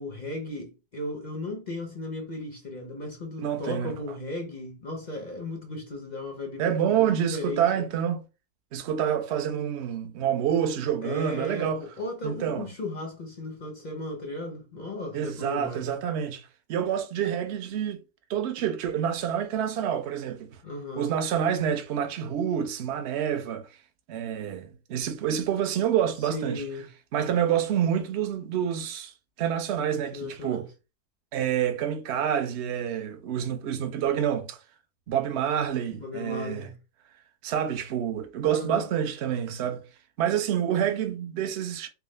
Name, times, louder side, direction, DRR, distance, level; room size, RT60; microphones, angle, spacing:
voice 1, 0.0-7.9 11.0-15.9 20.6-21.1 26.2-26.9 29.9-30.6 35.9-36.8 38.4-38.9, left 2 dB, 50° left, 0.5 m, -36 dB
voice 2, 3.4-3.9 6.6-8.2 8.7-11.8 12.2-12.7 15.1-18.0 18.3-20.5 21.0-23.7 24.1-26.6 27.1-29.1 29.4-30.6 31.3-34.6 35.1-36.7 37.4-39.8 40.2-41.9, right 9 dB, 60° right, 0.7 m, -27 dB
4.6 x 2.0 x 3.1 m
omnidirectional pair, 1.7 m